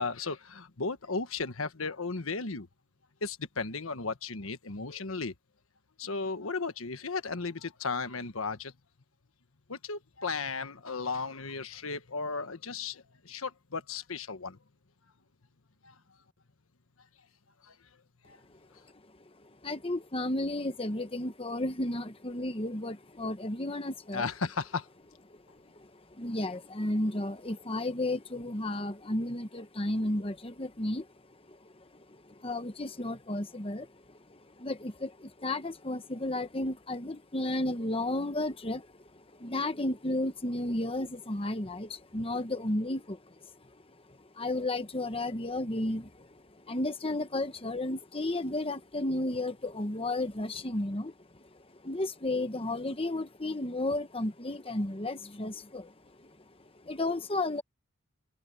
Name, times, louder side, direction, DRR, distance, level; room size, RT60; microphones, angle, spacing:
voice 1, 0.0-2.7 3.2-5.3 6.0-8.7 9.7-14.6 15.8-16.0 17.6-17.8 18.2-18.4 24.1-24.9, left 4 dB, 85° left, 1.4 m, -35 dB
voice 2, 19.4-24.3 25.3-43.7 44.1-57.6, left 1 dB, 25° left, 1.2 m, -33 dB
head